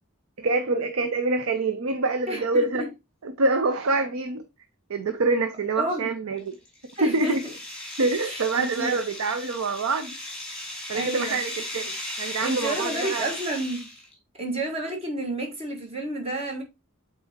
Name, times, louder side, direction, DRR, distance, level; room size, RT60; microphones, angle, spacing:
voice 1, 0.4-2.9 3.2-4.4 4.9-6.6 7.0-7.4 8.0-10.2 10.9-13.3, right 3 dB, 85° right, 0.6 m, -26 dB
voice 2, 2.3-2.9 5.8-6.1 7.0-7.4 8.0-8.9 10.9-11.4 12.4-13.9 14.3-16.6, right 1 dB, 30° right, 1.5 m, -30 dB
sound 1, 6.4-14.1, left 1 dB, 5° left, 2.5 m, -36 dB
7.9 x 4.2 x 2.8 m
head